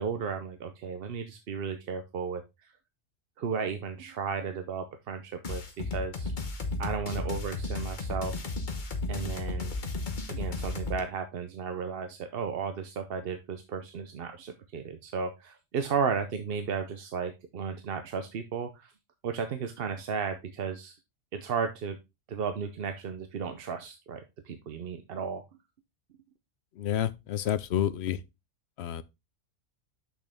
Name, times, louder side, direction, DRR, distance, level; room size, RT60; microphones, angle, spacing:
voice 1, 0.0-2.7 3.4-6.3 6.8-8.3 9.1-9.7 10.3-18.9 19.2-21.0 21.3-22.0 22.3-25.4, right 6 dB, 55° right, 0.8 m, -34 dB
sound 1, 5.4-11.0, left 3 dB, 40° left, 1.1 m, -34 dB
voice 2, 26.8-28.2 28.8-29.0, left 10 dB, 65° left, 0.7 m, -29 dB
6.4 x 5.9 x 3.4 m
omnidirectional pair, 1.3 m